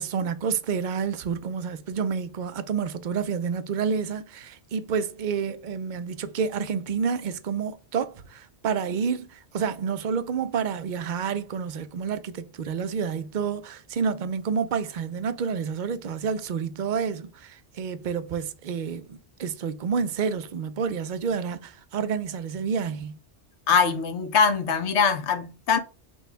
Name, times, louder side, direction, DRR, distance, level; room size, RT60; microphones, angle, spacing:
voice 1, 0.0-23.2, right 6 dB, 50° right, 0.6 m, -29 dB
voice 2, 23.7-25.8, left 6 dB, 75° left, 1.0 m, -22 dB
6.2 x 2.3 x 3.4 m
omnidirectional pair, 1.2 m